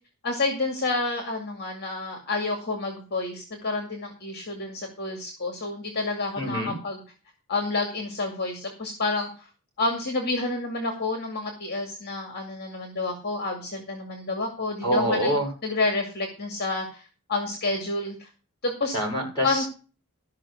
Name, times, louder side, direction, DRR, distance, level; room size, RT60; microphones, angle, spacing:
voice 1, 0.2-7.0 7.5-9.5 9.8-15.4 15.6-17.0 17.3-18.3 18.6-18.9 19.4-19.6, left 3 dB, 50° left, 4 dB, 2.2 m, -29 dB
voice 2, 6.4-6.7 14.8-15.5 18.9-19.7, equal, 20° left, -2 dB, 7.4 m, -25 dB
14.0 x 5.8 x 6.5 m, 0.35 s
head